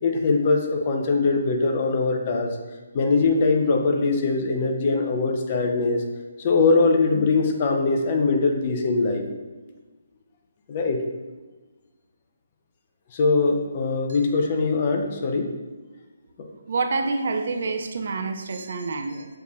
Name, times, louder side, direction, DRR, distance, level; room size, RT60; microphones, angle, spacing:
voice 1, 0.0-2.5 2.9-6.0 6.4-9.2 10.7-11.0 13.1-15.5, left 3 dB, 35° left, 3 dB, 0.6 m, -22 dB
voice 2, 16.7-19.3, right 3 dB, 55° right, 6 dB, 0.3 m, -27 dB
6.6 x 2.7 x 2.4 m, 1.2 s
figure-of-eight pair, 140°, 0 cm